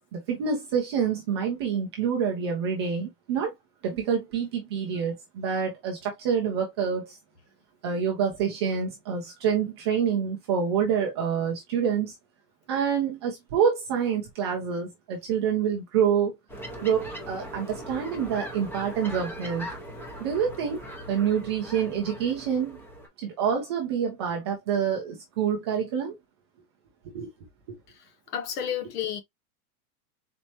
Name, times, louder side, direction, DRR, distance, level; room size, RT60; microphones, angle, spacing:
voice 1, 0.1-3.5 3.8-7.2 7.8-12.2 12.7-16.3 16.8-19.7 20.2-20.8 21.1-22.8 23.2-26.1 27.0-27.3 27.7-27.8, right 7 dB, 20° right, 0.3 m, -27 dB
sound 1, 16.5-23.1, equal, 5° left, 0.8 m, -40 dB
voice 2, 28.3-29.2, left 9 dB, 75° left, 1.1 m, -31 dB
4.2 x 3.1 x 2.7 m
supercardioid pair, 150°, 47 cm